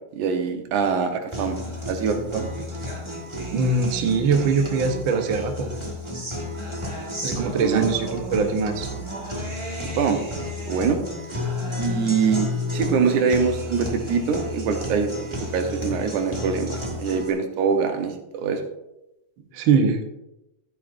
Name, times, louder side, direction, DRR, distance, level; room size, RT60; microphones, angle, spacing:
voice 1, 0.1-1.6 1.9-2.5 7.6-7.9 10.0-10.2 10.7-11.0 11.8-15.1 15.5-18.7, right 6 dB, 85° right, 5 dB, 2.5 m, -24 dB
Guitar, 1.3-17.3, left 1 dB, 25° right, 0.6 m, -32 dB
voice 2, 3.5-5.7 7.2-8.9 19.5-20.0, right 4 dB, 65° right, 5 dB, 1.3 m, -22 dB
14.0 x 8.8 x 2.6 m, 0.90 s
omnidirectional pair, 3.4 m